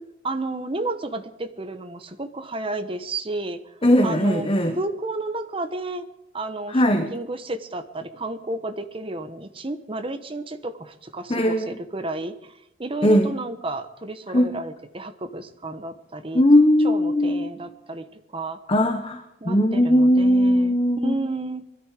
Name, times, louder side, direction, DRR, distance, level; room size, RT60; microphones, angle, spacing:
voice 1, 0.2-3.6 4.0-4.5 4.8-6.0 6.3-12.5 12.8-16.4 16.8-18.1 18.3-18.6 19.4-20.7 21.0-21.6, right 2 dB, 30° right, 9 dB, 1.1 m, -32 dB
voice 2, 3.8-4.8 6.7-7.1 11.3-11.7 13.0-13.3 14.3-14.5 16.3-17.5 18.7-21.2, equal, 30° left, 5 dB, 1.2 m, -19 dB
21.0 x 13.5 x 5.0 m, 0.89 s
head